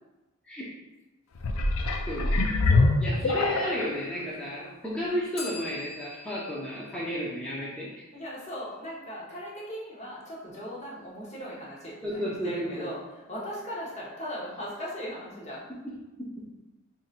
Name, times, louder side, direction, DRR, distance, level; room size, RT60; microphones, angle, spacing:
sound 1, 1.4-4.0 4.6-4.7, left 2 dB, 85° left, 0.4 m, -24 dB
voice 1, 2.1-2.5 3.0-8.0 12.0-12.9 15.8-16.0, equal, 5° left, -8 dB, 0.6 m, -33 dB
Bell, 5.4-8.2, left 3 dB, 55° left, 1.2 m, -45 dB
voice 2, 8.1-13.0 13.3-15.6, equal, 35° left, -6 dB, 1.0 m, -38 dB
5.7 x 2.6 x 2.5 m, 1.1 s
head